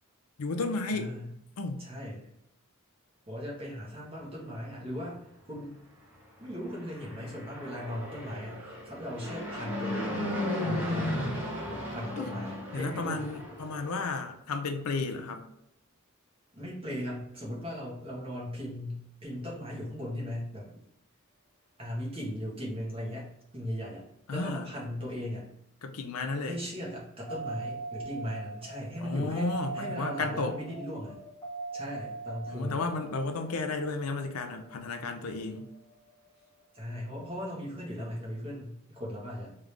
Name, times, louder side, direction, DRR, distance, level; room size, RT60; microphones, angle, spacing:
voice 1, 0.4-1.1 1.6-1.8 12.2-12.3 12.7-15.4 24.3-24.6 25.8-26.6 29.0-30.6 32.5-35.7, left 3 dB, 90° left, 6 dB, 0.6 m, -33 dB
voice 2, 0.9-1.3 1.8-2.3 3.3-5.2 5.5-5.7 6.4-10.2 10.6-13.3 16.5-20.8 21.8-24.0 24.3-25.5 26.4-31.2 31.7-32.8 36.7-39.6, equal, 25° right, -5 dB, 1.4 m, -38 dB
Fixed-wing aircraft airplane, 6.6-14.0, left 1 dB, 10° right, 1.0 m, -35 dB
sound 1, 27.3-37.4, right 3 dB, 30° left, 1.5 m, -42 dB
3.7 x 3.3 x 3.4 m, 0.80 s
head